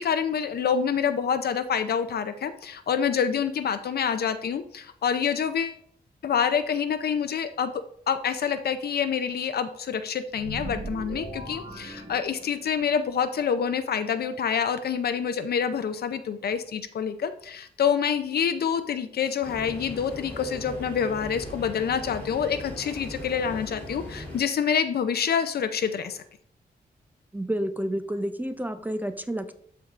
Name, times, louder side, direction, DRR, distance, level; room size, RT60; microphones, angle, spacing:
voice 1, 0.0-5.8 6.2-26.2, left 7 dB, 70° left, 10 dB, 0.5 m, -27 dB
sound 1, 10.3-12.9, right 1 dB, 65° right, 1.9 m, -38 dB
sound 2, 19.4-24.4, left 1 dB, 10° left, 2.9 m, -39 dB
voice 2, 27.3-29.5, right 1 dB, 10° right, 9 dB, 0.4 m, -30 dB
12.5 x 4.5 x 2.5 m, 0.64 s
wide cardioid pair, 135°, 17 cm